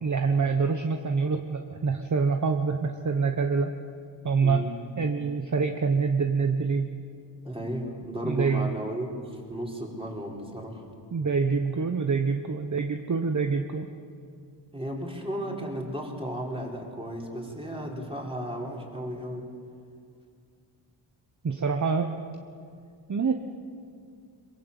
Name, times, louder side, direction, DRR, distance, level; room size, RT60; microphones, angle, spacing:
voice 1, 0.0-3.7 4.2-4.6 5.0-6.9 8.2-8.7 11.1-13.9 21.4-22.1 23.1-23.3, right 5 dB, 40° right, 6 dB, 1.2 m, -26 dB
voice 2, 4.4-4.7 7.4-10.8 14.7-19.5, equal, 10° right, -1 dB, 4.7 m, -34 dB
23.0 x 22.5 x 8.3 m, 2.3 s
wide cardioid pair, 100°, 45 cm